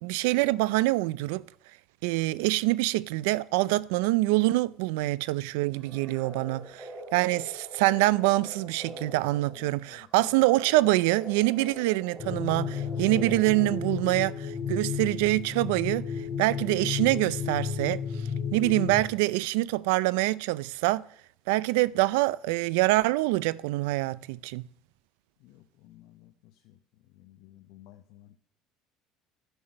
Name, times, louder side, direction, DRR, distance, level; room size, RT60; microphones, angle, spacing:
voice 1, 0.0-1.4 2.0-16.0 16.4-18.0 18.5-21.0 21.5-24.7, right 19 dB, 90° right, 0.4 m, -25 dB
sound 1, 5.8-14.2, equal, 10° right, 3.9 m, -45 dB
sound 2, 12.2-19.0, left 7 dB, 25° left, 3.3 m, -33 dB
voice 2, 25.4-26.3 26.6-26.8 27.2-28.4, left 14 dB, 70° left, 0.7 m, -54 dB
11.5 x 6.1 x 6.4 m
cardioid pair, 135°, 0 cm